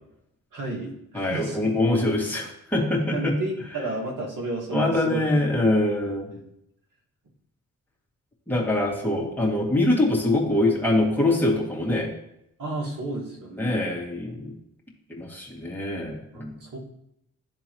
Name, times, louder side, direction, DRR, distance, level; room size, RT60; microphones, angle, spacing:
voice 1, 0.5-1.7 3.1-5.2 5.6-5.7 6.3-6.5 12.6-13.9 16.3-16.8, right 2 dB, 65° right, -2 dB, 2.0 m, -32 dB
voice 2, 1.1-3.3 4.7-6.3 8.5-12.1 13.6-14.5 15.1-16.6, left 2 dB, 5° left, -3 dB, 2.2 m, -24 dB
11.5 x 3.8 x 3.0 m, 0.81 s
cardioid pair, 60°, 34 cm